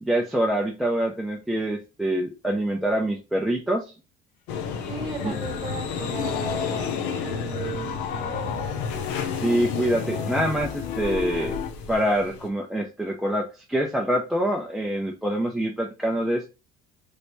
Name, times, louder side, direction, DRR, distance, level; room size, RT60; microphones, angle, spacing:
voice 1, 0.0-3.9 5.2-5.3 9.4-11.6 11.9-16.5, right 1 dB, ahead, 1 dB, 0.4 m, -25 dB
sound 1, 4.5-12.5, left 6 dB, 85° left, 0.8 m, -32 dB
Piano, 4.7-11.7, left 8 dB, 50° left, 0.5 m, -34 dB
voice 2, 4.9-8.8, right 6 dB, 25° right, 3 dB, 1.2 m, -37 dB
3.2 x 3.0 x 2.5 m, 0.30 s
cardioid pair, 155°, 19 cm